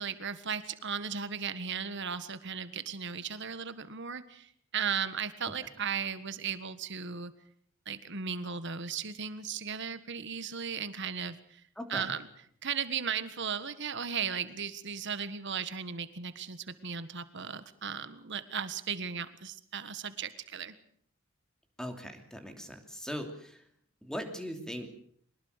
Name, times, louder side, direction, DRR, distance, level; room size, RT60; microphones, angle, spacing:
voice 1, 0.0-7.3 7.8-11.6 11.9-12.3 12.6-20.7, right 7 dB, 60° right, 12 dB, 1.6 m, -36 dB
voice 2, 11.8-12.1 21.8-23.6 24.0-24.9, equal, 5° left, 5 dB, 2.8 m, -39 dB
23.0 x 20.0 x 6.7 m, 0.62 s
head